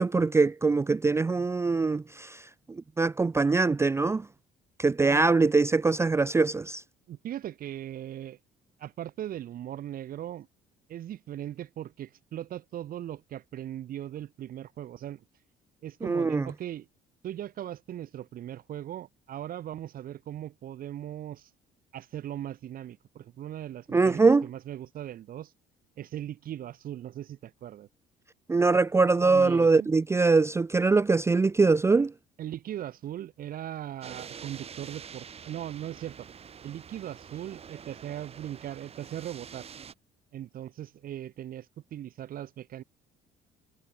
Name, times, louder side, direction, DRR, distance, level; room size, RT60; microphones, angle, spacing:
voice 1, 0.0-2.4 3.0-4.3 4.8-6.8 16.0-16.5 23.9-24.5 28.5-32.1, right 4 dB, 15° right, 0.5 m, -23 dB
voice 2, 5.0-5.3 7.1-8.4 8.8-10.5 10.9-15.2 15.8-16.9 17.2-21.5 21.9-25.5 26.0-27.9 29.2-29.9 32.4-36.3 36.6-39.7 40.3-42.8, right 11 dB, 60° right, 1.6 m, -39 dB
sound 1, 34.0-39.9, right 7 dB, 35° right, 1.5 m, -46 dB
cardioid pair, 110°, 17 cm